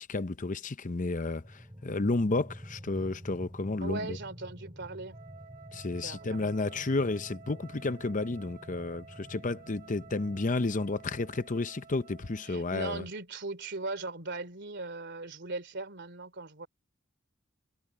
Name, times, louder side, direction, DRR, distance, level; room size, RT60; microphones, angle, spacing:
voice 1, 0.0-4.2 5.7-13.1, left 3 dB, 40° left, 0.7 m, -32 dB
sound 1, 1.3-11.4, equal, 20° right, 5.6 m, -49 dB
voice 2, 3.8-5.2 6.0-6.8 12.5-16.7, right 3 dB, 55° right, 3.1 m, -39 dB
Wind instrument woodwind instrument, 5.1-12.7, right 5 dB, 40° right, 2.5 m, -53 dB
head